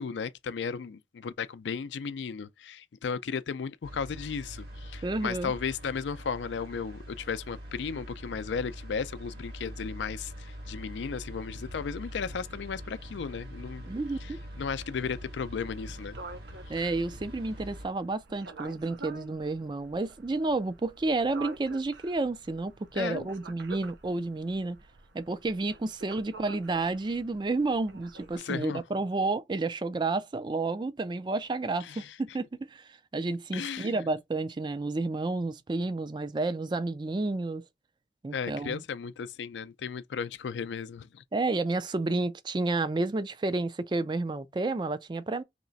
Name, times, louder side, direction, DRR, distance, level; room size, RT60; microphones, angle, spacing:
voice 1, 0.0-13.9 14.2-16.2 16.7-16.8 22.9-23.3 28.4-28.8 31.8-32.1 33.5-34.0 38.3-41.2, left 6 dB, 85° left, 0.4 m, -35 dB
sound 1, 3.8-17.9, equal, 60° right, 1.5 m, -43 dB
voice 2, 5.0-5.5 13.9-14.4 16.7-24.8 25.1-37.6 38.2-38.8 41.3-45.4, right 3 dB, 25° right, 0.3 m, -31 dB
sound 2, 15.7-28.4, right 4 dB, 90° right, 0.7 m, -48 dB
3.2 x 2.9 x 3.9 m
head